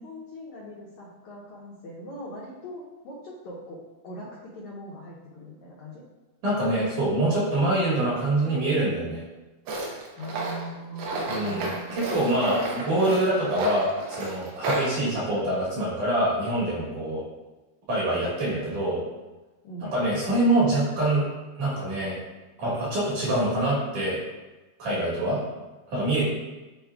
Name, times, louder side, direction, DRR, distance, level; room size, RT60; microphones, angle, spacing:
voice 1, 0.0-6.0 10.2-12.2 19.6-19.9, right 1 dB, 85° left, -5 dB, 1.6 m, -41 dB
voice 2, 6.4-9.2 11.3-17.2 17.9-19.0 19.8-21.3 21.6-22.2 22.6-24.2 24.8-25.4 25.9-26.3, right 1 dB, 55° right, -7 dB, 2.8 m, -25 dB
Tools, 9.7-14.9, right 2 dB, 70° right, 2.9 m, -31 dB
10.5 x 4.4 x 2.4 m, 1.1 s
omnidirectional pair, 4.9 m